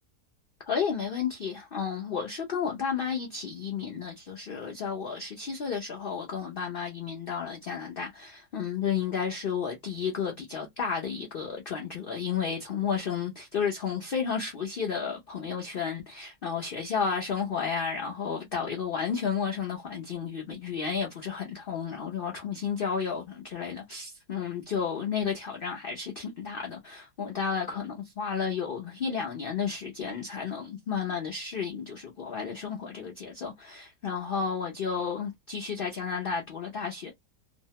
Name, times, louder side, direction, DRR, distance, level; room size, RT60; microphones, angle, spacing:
voice 1, 0.6-37.1, left 6 dB, 50° left, 0.6 m, -32 dB
2.8 x 2.1 x 2.8 m
omnidirectional pair, 1.7 m